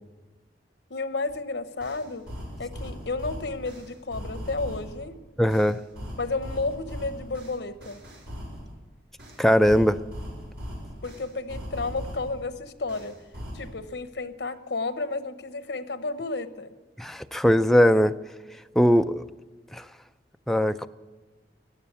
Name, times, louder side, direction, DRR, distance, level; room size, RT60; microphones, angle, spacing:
voice 1, 0.9-2.3 2.6-5.2 6.2-8.0 11.0-13.2 13.5-16.7, left 3 dB, 80° left, 12 dB, 0.9 m, -32 dB
sound 1, 1.3-1.4 1.8-5.0 5.5-8.7 9.2-12.4 12.9-13.7, equal, 75° right, 5.3 m, -39 dB
voice 2, 5.4-5.8 9.4-10.0 17.0-18.1 18.8-19.2 19.7-19.8 20.5-20.9, equal, ahead, 9 dB, 0.4 m, -20 dB
14.5 x 9.5 x 8.2 m, 1.3 s
head